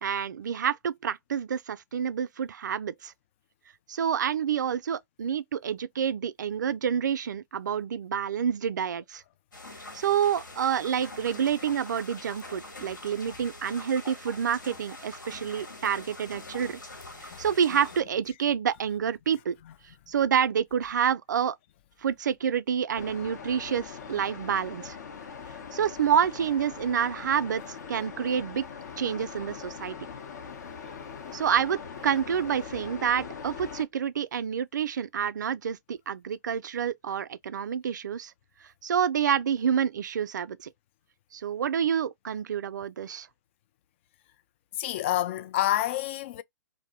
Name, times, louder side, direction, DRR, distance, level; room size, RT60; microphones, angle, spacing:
voice 1, 0.0-3.1 3.9-9.2 9.9-16.8 17.2-19.6 20.1-21.6 22.0-25.0 25.7-28.6 29.0-30.0 31.3-38.3 38.8-40.7 41.3-43.3, right 8 dB, 70° right, 0.4 m, -28 dB
sound 1, 9.5-18.0, left 2 dB, 85° left, 1.3 m, -44 dB
sound 2, 22.9-33.8, left 6 dB, 60° left, 0.8 m, -41 dB
voice 2, 44.8-46.4, left 13 dB, 40° left, 0.3 m, -28 dB
2.6 x 2.0 x 2.8 m
hypercardioid pair, 130°, 10 cm